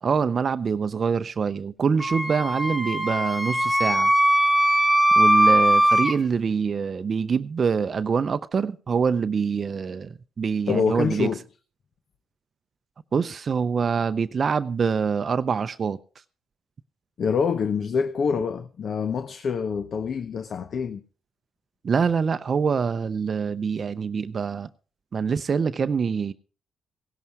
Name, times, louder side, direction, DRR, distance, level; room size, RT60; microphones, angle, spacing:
voice 1, 0.0-4.1 5.2-11.3 13.1-16.0 21.8-24.7 25.1-26.3, right 6 dB, 45° right, 0.6 m, -25 dB
Wind instrument woodwind instrument, 2.0-6.2, right 1 dB, 5° left, 1.5 m, -20 dB
voice 2, 10.7-11.4 17.2-21.0, left 6 dB, 55° left, 0.8 m, -26 dB
17.0 x 11.0 x 4.6 m
cardioid pair, 90°, 0 cm